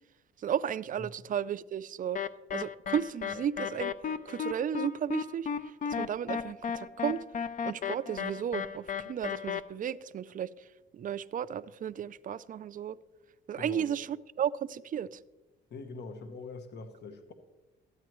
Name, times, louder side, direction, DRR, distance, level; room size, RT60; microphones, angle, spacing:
voice 1, 0.4-2.2 2.5-3.9 4.3-5.5 5.9-7.2 7.6-10.6 10.9-13.0 13.5-15.2, right 9 dB, 45° right, 0.4 m, -34 dB
sound 1, 2.1-9.6, left 7 dB, 40° left, 0.5 m, -34 dB
voice 2, 13.5-13.9 15.7-17.3, left 4 dB, 60° left, 1.0 m, -43 dB
13.5 x 9.2 x 3.0 m
cardioid pair, 90°, 20 cm